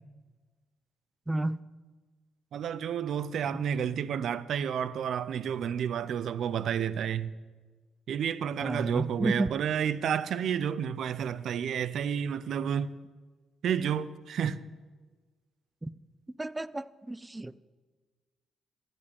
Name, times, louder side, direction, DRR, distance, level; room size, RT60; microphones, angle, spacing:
voice 1, 1.3-1.6 3.5-3.6 8.6-9.5 15.8-15.9 16.4-17.6, right 2 dB, 15° right, 0.4 m, -31 dB
voice 2, 2.5-7.3 8.1-12.9 13.6-14.6, right 8 dB, 65° right, 0.5 m, -30 dB
15.0 x 5.3 x 8.5 m
cardioid pair, 90°, 0 cm